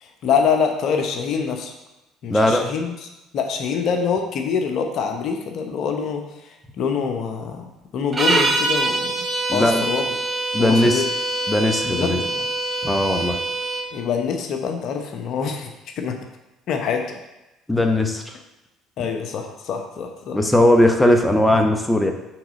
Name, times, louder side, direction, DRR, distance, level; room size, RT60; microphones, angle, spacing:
voice 1, 0.0-1.7 2.2-9.2 9.5-10.1 10.6-11.1 11.8-12.5 13.9-16.2 16.7-17.2 19.0-20.4, left 6 dB, 60° left, 4 dB, 0.8 m, -25 dB
voice 2, 2.3-2.6 9.5-9.8 10.5-11.1 11.5-12.2 12.8-13.4 17.7-18.4 20.3-22.1, left 1 dB, 10° left, 4 dB, 0.8 m, -18 dB
sound 1, 8.1-13.9, right 2 dB, 30° right, 1.1 m, -24 dB
5.9 x 3.8 x 5.1 m, 0.99 s
hypercardioid pair, 70°, 0 cm